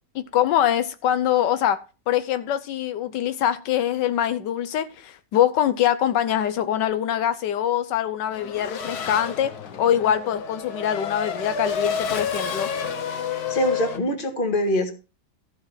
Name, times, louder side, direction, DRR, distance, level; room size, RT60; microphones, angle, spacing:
voice 1, 0.1-1.8 2.1-9.5 9.8-12.7, left 10 dB, 85° left, 1.4 m, -23 dB
Race car auto racing / Accelerating revving vroom, 8.3-14.0, left 6 dB, 65° left, 1.6 m, -30 dB
voice 2, 13.3-15.0, left 1 dB, 30° left, 1.9 m, -24 dB
14.0 x 5.7 x 5.6 m
omnidirectional pair, 1.8 m